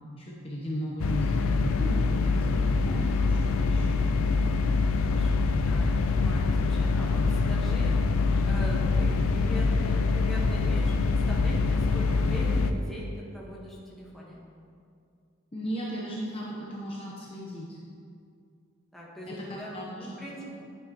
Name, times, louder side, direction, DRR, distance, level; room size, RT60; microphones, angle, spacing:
voice 1, 0.0-4.0 5.4-5.5 15.5-17.8 19.3-20.2, equal, 25° left, -5 dB, 0.9 m, -36 dB
sound 1, 1.0-12.7, left 4 dB, 90° left, 0.5 m, -25 dB
voice 2, 4.9-14.4 18.9-20.5, equal, ahead, -6 dB, 1.3 m, -41 dB
9.9 x 7.4 x 3.0 m, 2.4 s
head